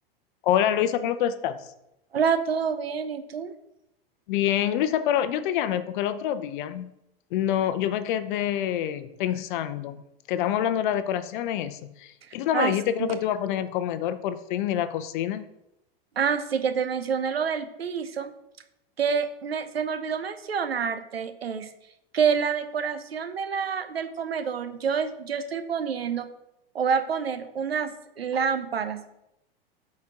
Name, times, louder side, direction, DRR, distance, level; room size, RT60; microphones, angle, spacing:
voice 1, 0.4-1.6 4.3-6.9 7.3-10.0 10.3-15.4, left 10 dB, 55° left, 12 dB, 0.7 m, -26 dB
voice 2, 2.1-3.5 12.5-13.2 16.2-18.3 19.0-21.7 22.1-26.3 26.7-29.1, right 6 dB, 85° right, 10 dB, 0.8 m, -27 dB
12.5 x 4.4 x 3.8 m, 0.85 s
hypercardioid pair, 100°, 30 cm